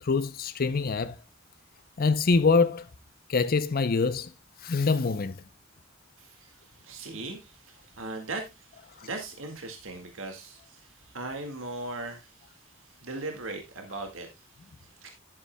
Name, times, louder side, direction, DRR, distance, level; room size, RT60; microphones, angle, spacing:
voice 1, 0.0-1.1 2.0-2.9 3.3-4.3 4.6-5.4, left 4 dB, 50° left, 0.6 m, -24 dB
voice 2, 6.2-15.2, right 2 dB, 80° right, 1.9 m, -39 dB
11.0 x 9.6 x 2.2 m
head